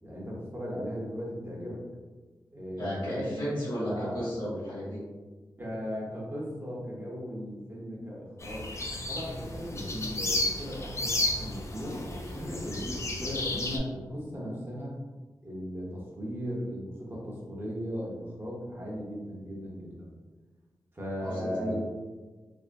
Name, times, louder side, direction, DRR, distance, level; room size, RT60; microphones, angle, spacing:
voice 1, 0.0-1.8 2.5-4.2 5.6-8.7 9.1-12.0 12.4-15.0 15.4-20.1 20.9-21.8, equal, 30° right, -4 dB, 0.9 m, -37 dB
voice 2, 2.8-5.0 9.7-9.8 12.3-12.9 21.2-21.8, equal, 70° left, -10 dB, 1.3 m, -34 dB
sound 1, 8.4-13.8, left 2 dB, 35° left, 0.4 m, -33 dB
3.4 x 2.1 x 2.5 m, 1.3 s
wide cardioid pair, 70°, 8 cm